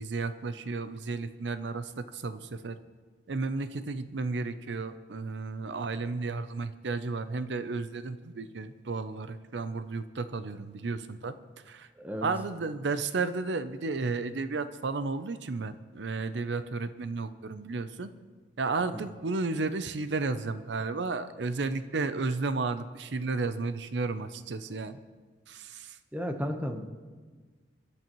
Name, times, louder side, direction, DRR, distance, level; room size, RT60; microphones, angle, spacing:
voice 1, 0.0-2.8 3.3-11.3 11.7-11.9 12.2-18.1 18.6-25.0 25.5-26.0, right 3 dB, 80° right, 12 dB, 0.6 m, -33 dB
voice 2, 12.0-12.3 26.1-26.9, equal, 10° right, 5 dB, 1.0 m, -33 dB
24.5 x 12.0 x 3.1 m, 1.4 s
head